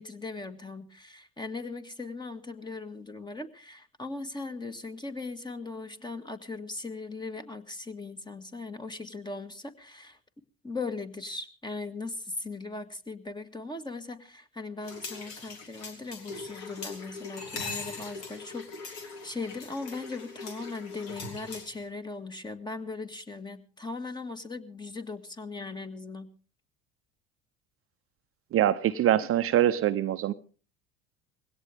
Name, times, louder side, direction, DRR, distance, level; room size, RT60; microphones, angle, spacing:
voice 1, 0.0-10.2 10.6-26.3, left 3 dB, 15° left, 1.9 m, -39 dB
sound 1, 14.8-21.9, left 4 dB, 60° left, 3.8 m, -41 dB
voice 2, 28.5-30.3, right 11 dB, 45° right, 0.8 m, -24 dB
20.5 x 17.0 x 3.6 m
hypercardioid pair, 75°, 30 cm